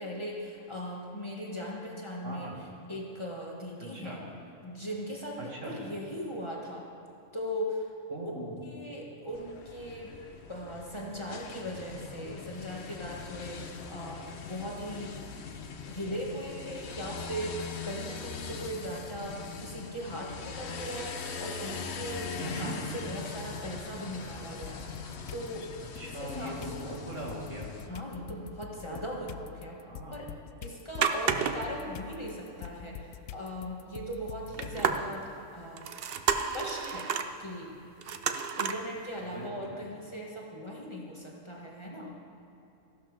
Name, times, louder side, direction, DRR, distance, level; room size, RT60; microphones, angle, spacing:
voice 1, 0.0-2.6 2.9-4.2 4.6-6.9 7.3-7.9 8.6-10.1 10.5-15.2 15.9-25.7 26.0-26.8 27.9-29.9 30.1-30.3 30.6-35.9 36.4-37.1 37.4-37.7 38.6-42.2, equal, 20° left, -3 dB, 1.9 m, -39 dB
voice 2, 3.8-4.2 5.4-5.8 8.1-8.6 22.4-22.7 26.0-27.7 28.9-29.0 29.8-30.2 34.6-34.9 39.3-39.7, right 1 dB, 75° right, -3 dB, 2.8 m, -40 dB
sound 1, 9.3-27.9, left 5 dB, 60° left, 1.1 m, -41 dB
sound 2, 24.6-25.5 26.0-35.2, left 11 dB, 80° left, 0.9 m, -46 dB
sound 3, 31.0-31.8 32.1-32.2 32.6-32.7 34.5-35.3 35.8-37.3 38.0-38.8 39.3-39.4, right 6 dB, 55° right, 0.9 m, -30 dB
15.0 x 12.0 x 5.4 m, 2.9 s
omnidirectional pair, 1.3 m